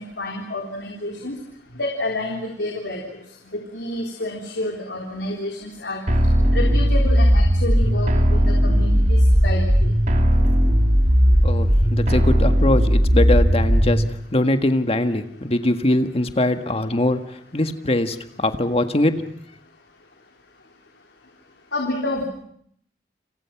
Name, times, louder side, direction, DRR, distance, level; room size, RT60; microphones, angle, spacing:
voice 1, 0.0-1.3 1.8-3.0 3.5-6.0 6.5-9.9 21.7-22.2, left 1 dB, 80° left, 1 dB, 3.7 m, -29 dB
sound 1, 6.1-14.1, equal, 45° right, 3.1 m, -17 dB
voice 2, 11.3-14.0 14.3-19.2, left 1 dB, 35° left, 8 dB, 1.7 m, -22 dB
29.5 x 26.5 x 6.0 m, 0.67 s
head